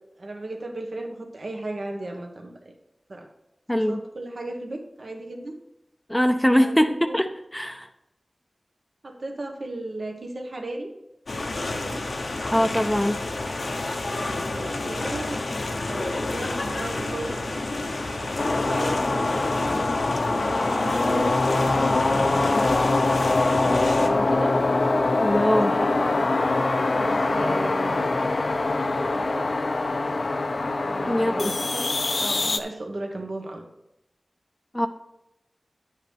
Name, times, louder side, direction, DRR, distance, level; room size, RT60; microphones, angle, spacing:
voice 1, 0.2-2.7 3.1-3.3 3.7-5.6 6.5-7.2 9.0-10.9 11.6-12.1 14.1-15.4 15.9-17.4 18.2-19.9 20.2-22.5 23.5-24.6 25.4-26.3 26.9-28.1 29.1-29.5 30.8-31.8 32.2-33.6, right 2 dB, 75° right, 2 dB, 1.3 m, -35 dB
voice 2, 3.7-4.0 6.1-7.3 7.5-7.9 12.5-13.2 25.2-25.7 31.1-31.5 34.7-34.9, equal, 10° left, 7 dB, 0.5 m, -22 dB
sound 1, 11.3-24.1, left 2 dB, 90° left, 0.9 m, -30 dB
sound 2, 18.4-32.6, left 2 dB, 70° left, 0.6 m, -23 dB
10.5 x 8.2 x 3.5 m, 0.88 s
wide cardioid pair, 50°, 0 cm